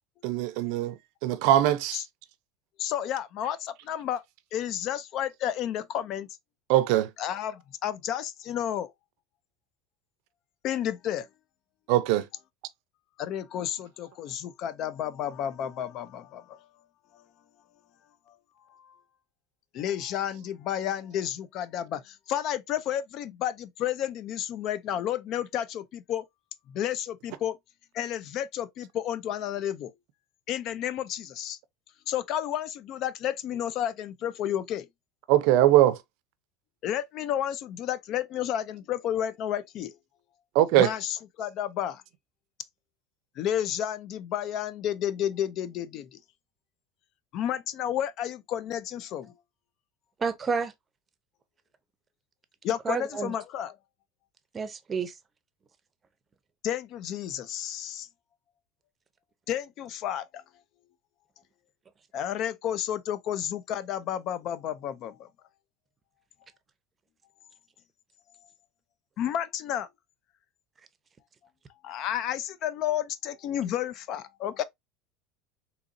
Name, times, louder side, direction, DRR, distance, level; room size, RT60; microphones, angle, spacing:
voice 1, 0.2-0.9 1.2-2.0 6.7-7.1 11.9-12.2 35.3-36.0 40.6-40.9, right 13 dB, 70° right, 0.5 m, -21 dB
voice 2, 2.8-4.2 4.5-6.3 7.2-8.9 10.6-11.3 13.2-16.6 17.1-17.2 18.7-19.0 19.7-26.2 26.7-27.6 27.9-29.9 30.5-31.6 32.1-34.9 36.8-39.9 40.7-42.0 43.4-46.2 47.3-49.3 52.6-53.7 56.6-58.1 59.5-60.4 62.1-65.3 69.2-69.9 71.8-74.6, left 10 dB, 50° left, 0.4 m, -31 dB
voice 3, 50.2-50.7 52.8-53.3 54.5-55.1, right 5 dB, 25° right, 0.6 m, -29 dB
3.9 x 2.8 x 2.5 m
supercardioid pair, 125°, 0 cm